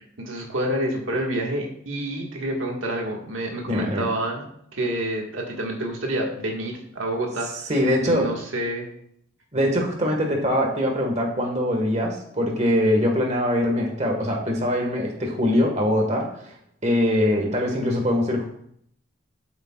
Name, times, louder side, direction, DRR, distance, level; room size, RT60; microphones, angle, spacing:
voice 1, 0.0-4.5 4.7-7.7 8.0-8.9, right 1 dB, 85° right, 0 dB, 1.8 m, -28 dB
voice 2, 3.7-4.0 7.7-8.3 9.5-16.5 16.8-18.5, left 1 dB, 35° right, 1 dB, 1.7 m, -22 dB
12.5 x 8.1 x 2.4 m, 0.70 s
head